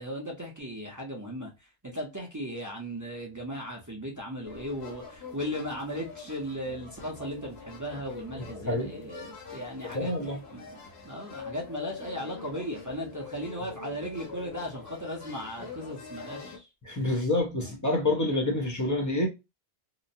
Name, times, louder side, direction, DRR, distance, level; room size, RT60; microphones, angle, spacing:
voice 1, 0.0-16.7 17.0-17.2 17.6-17.8 18.2-18.3, equal, 20° right, 0.6 m, -37 dB
sound 1, 4.4-16.6, left 5 dB, 90° left, 1.1 m, -44 dB
voice 2, 9.9-10.4 16.9-19.3, left 2 dB, 20° left, 0.7 m, -27 dB
2.8 x 2.1 x 2.5 m
omnidirectional pair, 1.0 m